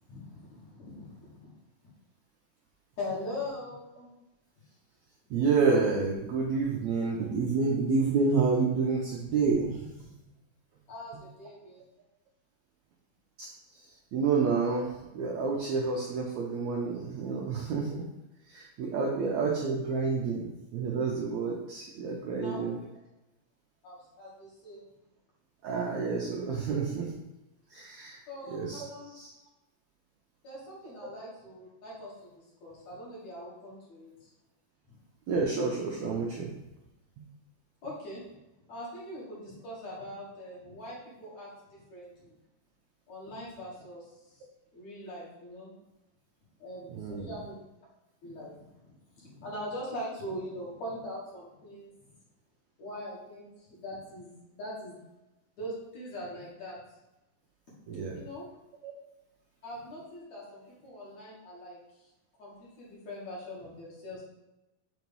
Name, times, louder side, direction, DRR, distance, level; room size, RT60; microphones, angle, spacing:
voice 1, 0.1-1.1 1.4-1.5 3.0-4.1 10.9-11.8 22.4-22.7 23.8-24.8 28.3-29.1 30.4-34.3 34.9-35.0 37.8-38.2 38.7-42.3 43.1-44.4 44.7-45.7 46.6-47.6 48.2-51.9 52.8-55.0 55.6-56.8 58.1-58.5 59.6-61.8 62.4-64.2, left 1 dB, 55° left, -7 dB, 2.8 m, -42 dB
voice 2, 5.3-9.8 13.4-13.5 14.1-18.0 18.5-22.8 25.6-27.1 27.7-28.2 28.5-28.9 29.1-29.3 35.3-36.5 46.9-47.3 57.9-58.2 58.8-58.9, right 4 dB, 80° right, -2 dB, 1.6 m, -29 dB
6.7 x 3.0 x 5.3 m, 0.98 s
omnidirectional pair, 4.1 m